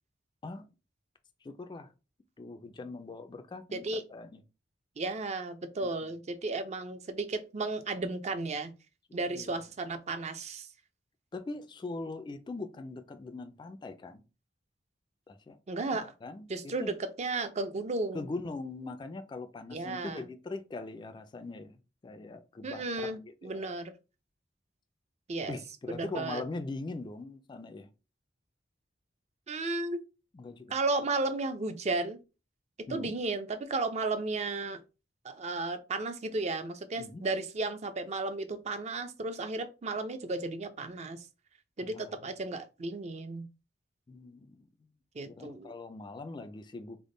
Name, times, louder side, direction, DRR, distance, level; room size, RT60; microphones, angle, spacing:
voice 1, 1.4-1.9 2.4-4.4 5.8-6.1 9.3-9.6 11.3-14.2 15.3-15.6 16.2-16.9 18.1-23.7 25.5-27.9 30.3-30.7 32.9-33.2 37.0-37.2 41.8-42.1 44.1-44.7 45.2-47.0, left 3 dB, 25° left, 0.3 m, -41 dB
voice 2, 3.7-4.0 5.0-8.7 9.1-10.7 15.7-16.1 16.5-18.3 19.7-20.2 22.6-23.9 25.3-25.6 25.9-26.4 29.5-30.0 30.7-32.2 32.8-34.8 35.2-41.3 41.8-43.5 45.1-45.7, right 3 dB, 35° right, 0.5 m, -34 dB
3.5 x 2.1 x 3.7 m
head